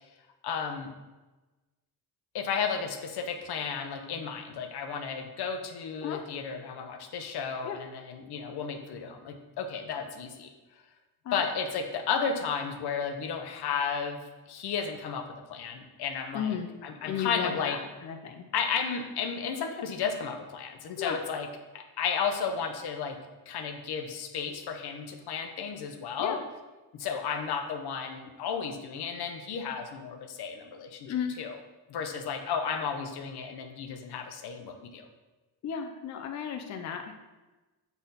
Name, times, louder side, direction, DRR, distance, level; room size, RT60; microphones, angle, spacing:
voice 1, 0.4-0.9 2.3-10.5 11.3-14.2 14.5-15.2 15.5-17.8 18.5-21.5 21.7-23.2 23.5-26.4 26.9-31.6 31.9-35.1, left 6 dB, 80° left, 6 dB, 0.8 m, -33 dB
voice 2, 16.3-16.7 17.0-18.4 21.0-21.2 26.2-26.4 31.1-31.3 35.6-37.1, left 8 dB, 45° left, 4 dB, 0.5 m, -34 dB
7.0 x 4.1 x 4.0 m, 1.2 s
wide cardioid pair, 170°, 38 cm